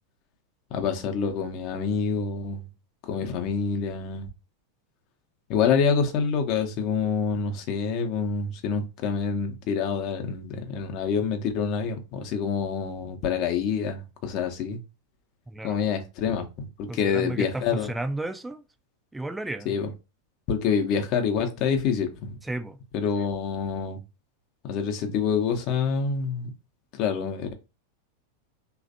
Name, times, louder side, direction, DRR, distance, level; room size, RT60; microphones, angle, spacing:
voice 1, 0.7-2.7 3.0-4.3 5.5-14.8 15.6-17.9 19.7-19.9 20.5-22.4 22.9-24.0 24.6-26.5 27.0-27.5, left 6 dB, 40° left, 0.7 m, -27 dB
voice 2, 15.5-15.8 16.9-18.6 19.1-19.8 22.4-22.8, right 2 dB, 5° right, 0.4 m, -33 dB
3.2 x 2.3 x 2.6 m
figure-of-eight pair, 90°, 0 cm